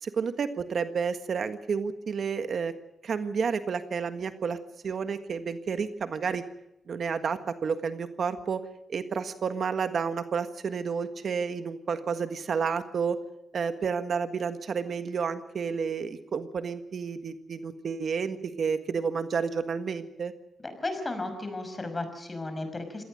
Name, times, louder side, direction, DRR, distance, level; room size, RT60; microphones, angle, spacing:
voice 1, 0.0-2.7 3.0-4.6 4.8-6.4 6.9-8.6 8.9-13.2 13.5-20.3, right 6 dB, 60° right, 9 dB, 1.6 m, -30 dB
voice 2, 20.6-23.0, left 2 dB, 25° left, 8 dB, 5.7 m, -34 dB
26.0 x 18.0 x 6.5 m, 0.87 s
cardioid pair, 90°, 0 cm